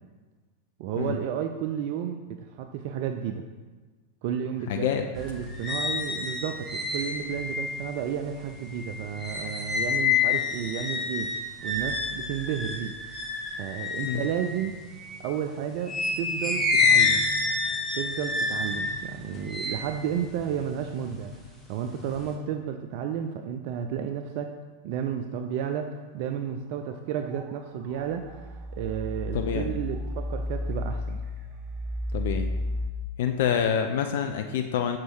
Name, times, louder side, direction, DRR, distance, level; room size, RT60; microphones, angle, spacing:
voice 1, 0.8-3.4 4.2-11.3 11.6-12.9 13.6-14.8 15.2-17.3 17.9-21.3 21.7-24.5 24.8-31.2, right 8 dB, 45° right, 6 dB, 0.3 m, -32 dB
voice 2, 4.7-5.0 14.0-14.2 29.3-29.7 32.1-32.5 33.2-35.0, left 8 dB, 55° left, 6 dB, 0.3 m, -27 dB
sound 1, 5.1-15.3 15.8-21.3 21.7-22.3, left 4 dB, 10° left, 1.2 m, -28 dB
sound 2, 27.3-27.6 27.9-32.9, left 1 dB, 30° right, 0.7 m, -33 dB
6.1 x 4.0 x 4.6 m, 1.3 s
figure-of-eight pair, 90°, 0 cm